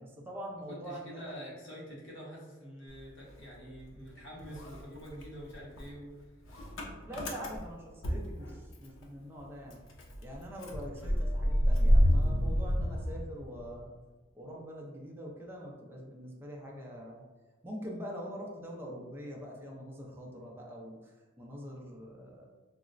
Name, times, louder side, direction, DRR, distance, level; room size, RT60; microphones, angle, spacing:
voice 1, 0.0-1.3 4.1-4.3 7.1-9.8 10.2-13.9 14.3-17.2 17.6-22.5, equal, 10° right, -2 dB, 0.4 m, -44 dB
voice 2, 0.7-6.1 10.9-11.0, equal, 65° left, -4 dB, 0.9 m, -46 dB
Motor vehicle (road) / Engine starting, 2.9-4.1 4.4-9.1 9.4-9.5 9.7-13.8, equal, 90° left, 0.5 m, -29 dB
3.9 x 2.0 x 2.4 m, 1.2 s
head